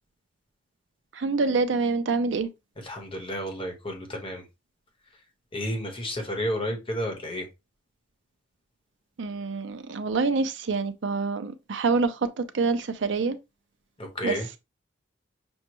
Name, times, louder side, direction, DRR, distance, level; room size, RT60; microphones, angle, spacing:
voice 1, 1.1-2.5 9.2-13.4 14.2-14.4, right 4 dB, 70° right, 0.6 m, -26 dB
voice 2, 2.8-4.4 5.5-7.5 14.0-14.5, equal, 30° left, 1.1 m, -31 dB
6.2 x 2.3 x 2.9 m
head